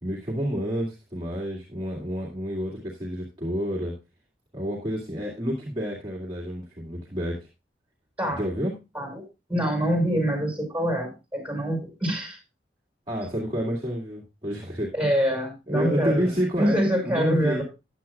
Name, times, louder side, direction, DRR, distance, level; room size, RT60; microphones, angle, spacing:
voice 1, 0.0-3.9 4.5-7.5 8.3-8.7 13.1-14.9 15.7-17.6, equal, 25° right, -4 dB, 2.2 m, -29 dB
voice 2, 9.5-12.4 14.9-17.6, equal, 10° right, 1 dB, 5.4 m, -25 dB
14.0 x 9.6 x 2.3 m, 0.27 s
head